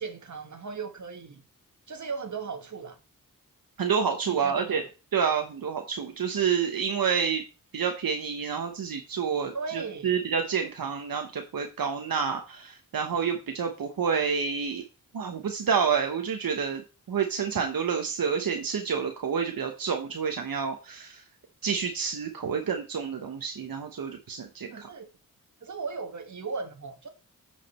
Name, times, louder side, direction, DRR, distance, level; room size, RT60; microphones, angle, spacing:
voice 1, 0.0-1.4 1.9-3.0 4.3-4.8 9.5-10.1 24.7-25.1 25.6-27.1, right 5 dB, 55° right, 1.5 m, -37 dB
voice 2, 3.8-4.8 5.1-7.4 7.7-14.8 15.1-16.8 17.1-21.2 21.6-24.9, right 6 dB, 80° right, 1.0 m, -28 dB
10.5 x 5.0 x 4.2 m
wide cardioid pair, 115°, 34 cm